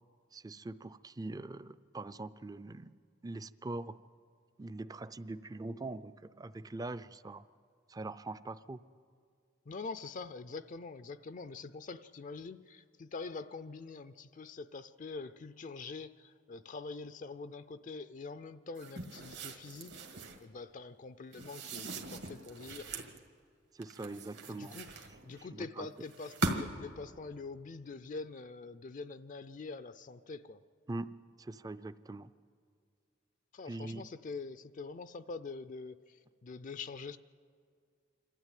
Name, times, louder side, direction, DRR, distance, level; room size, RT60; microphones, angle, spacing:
voice 1, 0.3-2.9 3.2-4.0 4.6-7.4 7.9-8.8 23.7-24.8 25.5-25.9 30.9-32.3 33.7-34.1, right 2 dB, 20° right, 14 dB, 0.4 m, -42 dB
voice 2, 9.7-23.1 24.5-30.6 33.5-37.2, left 4 dB, 45° left, 12 dB, 0.4 m, -45 dB
sound 1, 18.8-20.4 21.3-23.2 23.8-25.4 26.1-26.9, right 2 dB, 65° right, 1.7 m, -40 dB
26.5 x 13.0 x 9.1 m, 2.2 s
head